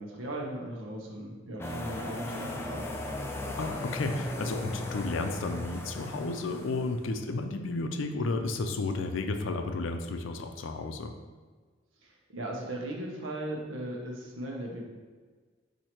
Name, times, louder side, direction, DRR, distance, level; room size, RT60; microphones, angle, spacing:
voice 1, 0.0-2.9 12.0-14.8, right 1 dB, 85° right, -1 dB, 0.9 m, -37 dB
sound 1, 1.6-7.1, left 1 dB, 15° left, 0.4 m, -37 dB
voice 2, 3.6-11.1, left 3 dB, 75° left, 6 dB, 0.4 m, -32 dB
4.3 x 2.8 x 4.4 m, 1.4 s
head